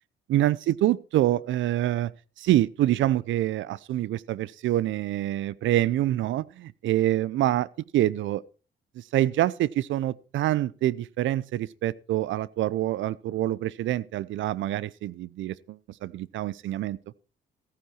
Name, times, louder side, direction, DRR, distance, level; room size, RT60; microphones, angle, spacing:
voice 1, 0.3-2.1 2.4-8.4 9.0-17.0, right 14 dB, 75° right, 0.5 m, -26 dB
14.5 x 9.6 x 4.4 m
cardioid pair, 90°, 20 cm